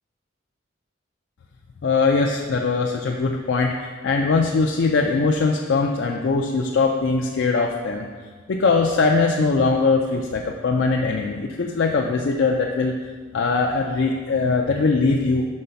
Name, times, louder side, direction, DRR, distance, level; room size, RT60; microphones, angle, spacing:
voice 1, 1.8-8.0 8.5-13.0 13.3-15.5, left 4 dB, 60° left, 0 dB, 0.4 m, -21 dB
5.3 x 3.9 x 5.6 m, 1.5 s
head